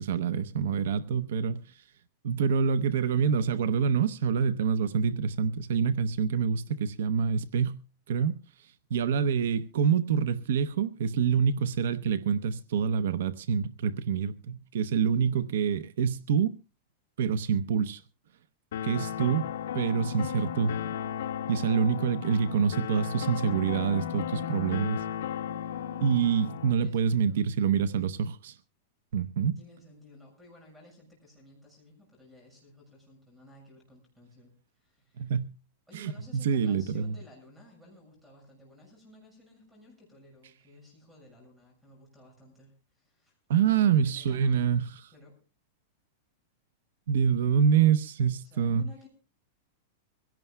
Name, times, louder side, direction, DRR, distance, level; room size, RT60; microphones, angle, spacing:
voice 1, 0.0-1.8 2.2-7.8 8.1-16.6 17.2-18.0 18.8-19.5 19.7-20.7 21.5-25.0 26.0-28.6 29.1-29.6 35.2-35.5 35.9-37.1 43.5-44.9 47.1-48.8, right 7 dB, 70° right, 0.7 m, -26 dB
sound 1, 18.7-26.7, left 9 dB, 80° left, 1.1 m, -35 dB
voice 2, 26.7-27.5 29.6-35.3 35.9-43.4 43.7-44.7 45.1-45.4 48.4-49.1, left 2 dB, 5° right, 6.5 m, -55 dB
24.0 x 16.5 x 2.3 m
supercardioid pair, 175°, 0 cm